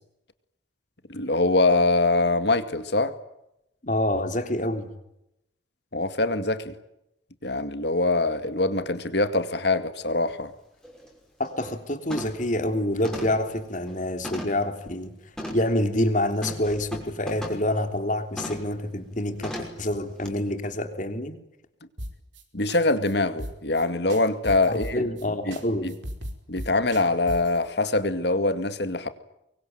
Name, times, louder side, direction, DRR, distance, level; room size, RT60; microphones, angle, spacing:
voice 1, 1.1-3.1 5.9-6.7 7.4-10.5 22.5-25.0 25.4-25.6 25.8-25.9 26.5-29.1, left 2 dB, 60° left, 2.2 m, -23 dB
voice 2, 3.8-4.9 11.4-15.1 15.5-21.3 24.7-25.9, left 1 dB, 40° left, 3.1 m, -27 dB
sound 1, 10.3-10.4 10.8-11.1 11.5-11.8 12.1-12.5 13.0-14.7 15.4-15.7 16.4-17.7 18.4-18.7 19.4-19.9 20.2-20.3, equal, 5° left, 5.7 m, -37 dB
sound 2, 22.0-22.4 22.7-22.8 23.0-23.1 23.4-23.8 24.1-25.2 25.5-25.6 25.9-27.6, equal, 75° right, 5.2 m, -36 dB
24.5 x 23.5 x 9.2 m
head